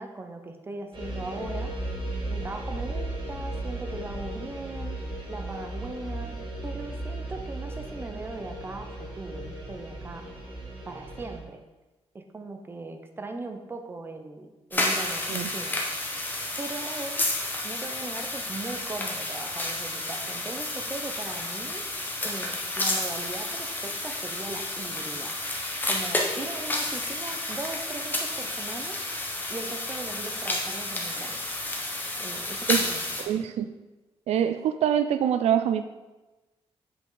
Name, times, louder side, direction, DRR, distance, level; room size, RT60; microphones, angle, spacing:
voice 1, 0.0-1.7 2.3-5.0 5.3-10.3 10.8-11.6 12.1-15.8 16.6-17.3 17.6-21.8 22.2-25.3 25.9-29.0 29.5-31.3 32.2-33.3, right 3 dB, 20° right, 5 dB, 0.7 m, -39 dB
sound 1, 0.9-11.4, right 1 dB, 50° right, 2.2 m, -35 dB
sound 2, 14.7-33.2, left 2 dB, 15° left, 1.0 m, -31 dB
voice 2, 33.3-33.7 34.3-35.9, right 9 dB, 80° right, 11 dB, 0.4 m, -24 dB
7.7 x 5.3 x 3.8 m, 1.1 s
wide cardioid pair, 150°, 11 cm